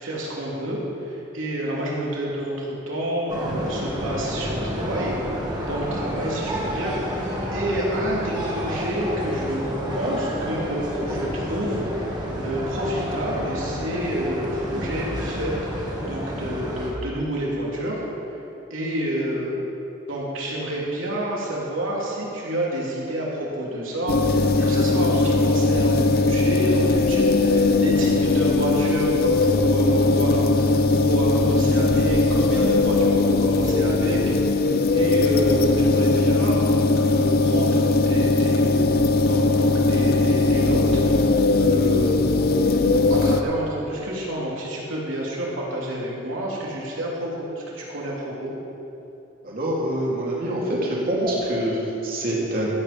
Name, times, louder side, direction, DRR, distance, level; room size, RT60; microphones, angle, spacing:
voice 1, 0.0-9.6 10.0-18.0 18.7-19.6 20.1-34.7 34.9-39.0 39.3-42.2 43.1-48.5, equal, 80° right, -5 dB, 3.1 m, -29 dB
sound 1, 3.3-16.9, equal, 20° right, 1.9 m, -30 dB
sound 2, 24.1-43.4, left 3 dB, 50° left, 0.6 m, -19 dB
voice 2, 42.6-43.0 49.4-52.7, right 1 dB, 45° right, -4 dB, 2.7 m, -26 dB
15.0 x 8.8 x 5.2 m, 2.9 s
head